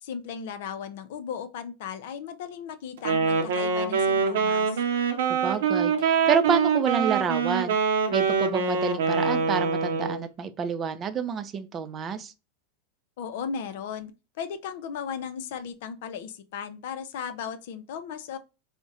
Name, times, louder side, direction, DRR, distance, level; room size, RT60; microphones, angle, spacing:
voice 1, 0.0-4.8 13.2-14.1 14.4-18.4, left 7 dB, 70° left, 0.5 m, -36 dB
Wind instrument woodwind instrument, 3.0-10.2, right 5 dB, 75° right, 0.6 m, -24 dB
voice 2, 5.3-7.8 8.1-12.3, right 6 dB, 30° right, 0.4 m, -28 dB
3.5 x 2.1 x 2.5 m
hypercardioid pair, 110°, 0 cm